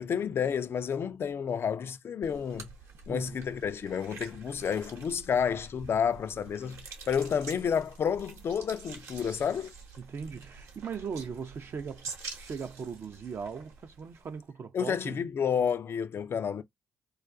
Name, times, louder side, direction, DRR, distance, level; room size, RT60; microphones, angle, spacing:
voice 1, 0.0-2.7 3.1-6.8 7.1-9.7 14.7-16.6, left 7 dB, 50° left, 0.3 m, -30 dB
sound 1, 2.2-14.4, right 4 dB, 70° right, 0.9 m, -47 dB
voice 2, 3.1-3.4 10.0-15.2, right 6 dB, 50° right, 0.4 m, -39 dB
2.3 x 2.2 x 2.4 m
hypercardioid pair, 45°, 5 cm